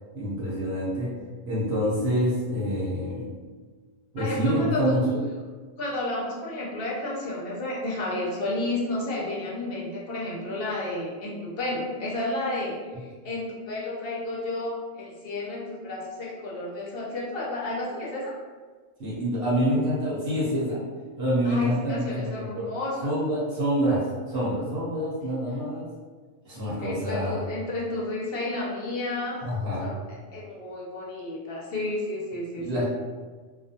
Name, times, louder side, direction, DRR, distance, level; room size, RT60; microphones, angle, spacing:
voice 1, 0.1-1.1 1.5-3.3 4.1-5.2 19.0-20.8 21.2-22.6 23.0-24.0 24.3-25.9 26.4-27.5 29.4-29.8 32.6-32.9, equal, 55° right, -7 dB, 0.9 m, -26 dB
voice 2, 4.2-4.9 5.8-18.3 21.4-23.1 26.8-29.5 29.8-30.0 30.3-32.9, left 2 dB, 55° left, -4 dB, 0.7 m, -31 dB
2.4 x 2.2 x 2.7 m, 1.4 s
omnidirectional pair, 1.3 m